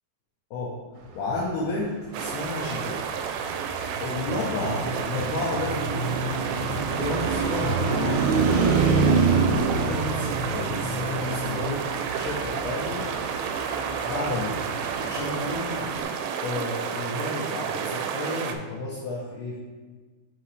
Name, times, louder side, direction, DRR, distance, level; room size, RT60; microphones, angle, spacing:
voice 1, 1.1-3.1 4.0-6.2 7.0-13.1 14.0-14.7 15.0-15.9 16.4-19.6, left 2 dB, 80° left, -5 dB, 2.3 m, -32 dB
sound 1, 2.1-18.5, right 7 dB, 90° right, 3.0 m, -31 dB
Traffic noise roadway noise, 2.3-16.0, right 4 dB, 70° right, 3.0 m, -27 dB
8.5 x 4.0 x 3.2 m, 1.4 s
omnidirectional pair, 5.5 m